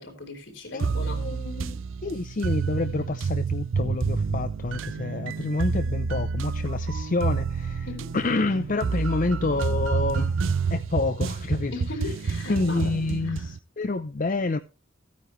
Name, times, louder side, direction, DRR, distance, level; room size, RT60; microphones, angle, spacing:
voice 1, 0.0-1.3 7.9-8.1 11.7-12.9 13.2-13.4, left 2 dB, 70° left, 4.3 m, -37 dB
voice 2, 0.7-7.9 8.1-11.7 12.5-14.6, left 3 dB, 40° left, 0.6 m, -28 dB
sound 1, 0.8-13.6, right 5 dB, 80° right, 0.5 m, -29 dB
15.5 x 9.5 x 3.1 m
head